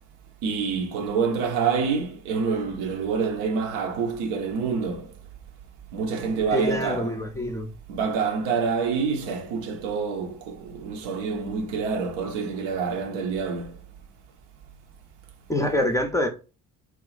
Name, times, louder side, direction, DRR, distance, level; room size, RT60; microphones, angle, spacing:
voice 1, 0.4-5.1 5.9-7.1 7.9-13.7, right 5 dB, 60° right, 0.8 m, -27 dB
voice 2, 6.5-7.7 15.5-16.3, left 1 dB, 5° left, 0.6 m, -25 dB
3.0 x 2.4 x 3.9 m
figure-of-eight pair, 50°, 45 cm